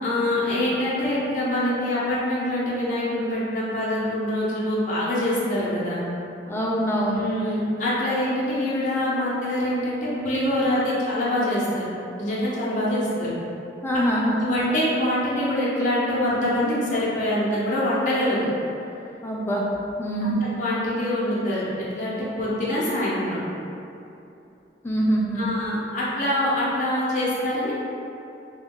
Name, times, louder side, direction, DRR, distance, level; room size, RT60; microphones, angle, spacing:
voice 1, 0.0-6.0 7.1-11.8 12.2-13.3 14.3-18.5 20.3-23.4 25.3-27.7, left 1 dB, 45° left, -8 dB, 0.7 m, -25 dB
voice 2, 6.5-7.2 13.8-14.4 19.2-19.7 20.0-20.4 24.8-25.5, equal, 15° left, -3 dB, 0.3 m, -24 dB
3.0 x 2.3 x 3.6 m, 2.8 s
head